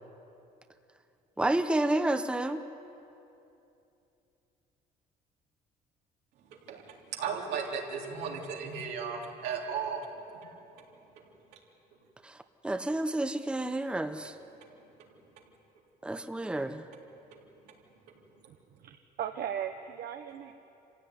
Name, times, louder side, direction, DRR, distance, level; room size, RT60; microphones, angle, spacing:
voice 1, 1.4-2.6 12.2-12.4 12.6-14.3 16.0-16.9, right 1 dB, 5° right, 8 dB, 0.9 m, -30 dB
voice 2, 6.7-10.1, right 6 dB, 90° right, -1 dB, 3.6 m, -35 dB
voice 3, 18.5-20.5, right 9 dB, 65° right, 6 dB, 1.1 m, -38 dB
25.5 x 16.0 x 9.7 m, 2.8 s
cardioid pair, 110°, 17 cm